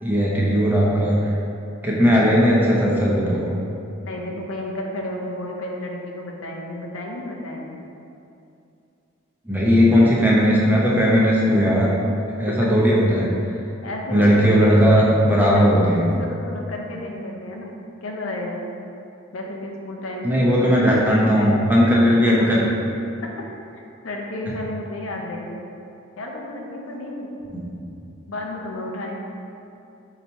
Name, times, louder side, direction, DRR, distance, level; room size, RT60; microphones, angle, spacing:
voice 1, 0.0-1.3 1.8-3.5 9.5-12.0 12.4-13.3 14.1-16.1 20.2-22.6 27.5-27.7, equal, 10° right, -5 dB, 0.6 m, -17 dB
voice 2, 4.0-7.8 9.9-10.0 13.8-14.5 15.0-15.2 15.4-15.8 16.2-18.6 19.3-21.6 22.4-22.5 23.2-23.3 23.7-25.6 26.2-27.3 28.3-29.2, left 1 dB, 85° left, 0 dB, 0.6 m, -32 dB
4.0 x 2.8 x 4.5 m, 2.7 s
head